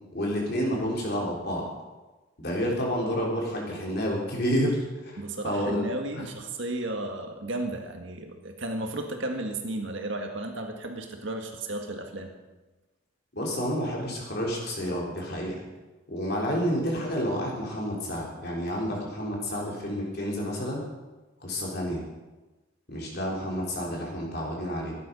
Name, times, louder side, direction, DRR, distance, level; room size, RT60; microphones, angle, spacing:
voice 1, 0.1-1.7 2.4-4.8 5.0-5.9 6.2-6.3 13.3-15.6 16.1-20.8 21.4-22.0 22.9-25.0, equal, 50° left, -2 dB, 3.8 m, -29 dB
voice 2, 5.2-12.3, right 2 dB, 60° right, 3 dB, 1.8 m, -33 dB
15.0 x 11.0 x 5.4 m, 1.2 s
head